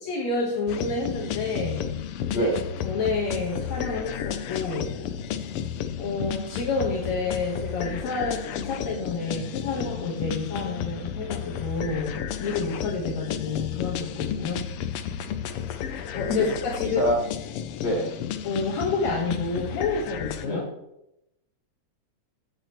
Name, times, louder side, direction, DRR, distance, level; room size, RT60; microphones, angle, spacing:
voice 1, 0.0-2.5 2.8-5.0 6.0-14.6 16.1-17.0 18.4-20.6, left 4 dB, 65° left, -2 dB, 2.7 m, -29 dB
sound 1, 0.7-20.4, left 9 dB, 85° left, 1.2 m, -33 dB
voice 2, 2.3-2.7 14.4-14.5 16.3-16.5 16.8-17.1 17.8-18.1 20.4-20.6, equal, 20° left, -5 dB, 5.1 m, -26 dB
15.5 x 8.5 x 3.1 m, 0.83 s
omnidirectional pair, 3.4 m